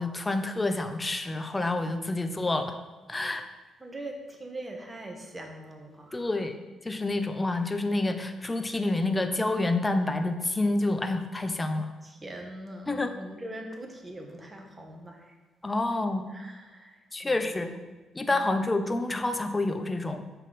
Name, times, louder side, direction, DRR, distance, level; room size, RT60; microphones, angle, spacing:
voice 1, 0.0-2.8 3.1-3.4 6.1-6.6 6.8-11.9 12.9-13.1 15.6-16.3 17.1-17.7 18.1-20.2, left 2 dB, 15° left, 7 dB, 0.6 m, -28 dB
voice 2, 3.8-6.3 12.0-15.4 16.3-17.9 18.3-18.7, right 1 dB, 20° right, 2 dB, 1.4 m, -42 dB
7.4 x 5.5 x 4.1 m, 1.2 s
cardioid pair, 90°, 0 cm